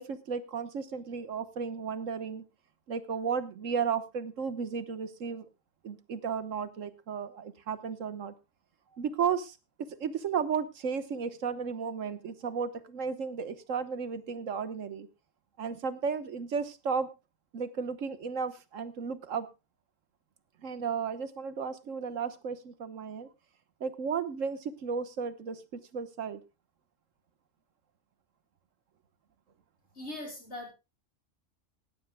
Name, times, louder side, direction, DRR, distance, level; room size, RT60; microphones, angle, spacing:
voice 1, 0.0-2.5 2.9-5.5 5.8-8.3 8.9-9.6 9.9-15.1 15.6-17.1 17.5-19.5 20.6-23.3 23.8-26.4, right 6 dB, 90° right, 12 dB, 1.5 m, -34 dB
voice 2, 29.9-30.7, left 1 dB, 60° left, 0 dB, 5.5 m, -40 dB
18.5 x 13.5 x 2.2 m, 0.26 s
omnidirectional pair, 1.3 m